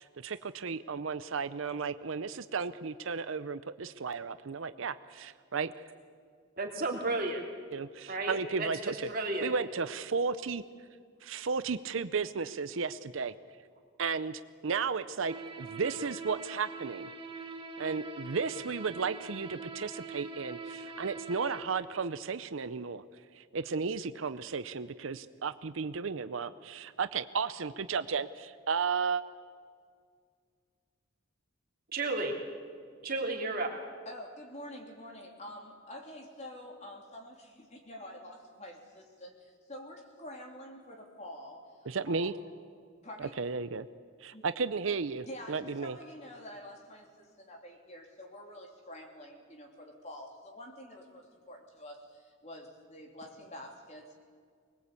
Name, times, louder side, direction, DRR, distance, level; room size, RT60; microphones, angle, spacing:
voice 1, 0.0-5.7 7.7-7.9 8.3-9.1 9.4-10.6 11.2-13.3 14.0-17.1 17.8-23.0 23.3-29.2 41.9-42.3 43.2-43.9 44.2-45.9, right 5 dB, 70° right, 12 dB, 0.6 m, -34 dB
voice 2, 6.6-7.4 8.1-9.5 31.9-32.3 33.0-33.7, right 2 dB, 45° right, 0 dB, 3.3 m, -33 dB
sound 1, 15.3-21.6, right 4 dB, 25° right, 1.9 m, -43 dB
voice 3, 34.1-42.3 43.0-43.4 44.3-44.5 45.2-54.1, left 1 dB, 35° left, 1 dB, 3.3 m, -47 dB
24.5 x 20.5 x 8.4 m, 2.1 s
head